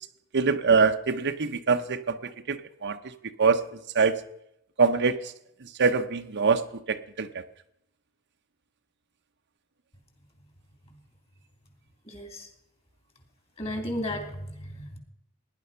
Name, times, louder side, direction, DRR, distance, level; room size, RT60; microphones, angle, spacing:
voice 1, 0.3-3.0 3.4-3.6 3.9-4.2 4.8-5.3 5.6-7.4, right 5 dB, 55° right, 8 dB, 0.8 m, -24 dB
voice 2, 12.1-12.5 13.6-15.0, left 1 dB, 30° left, 6 dB, 3.0 m, -34 dB
17.5 x 10.5 x 5.7 m, 0.81 s
head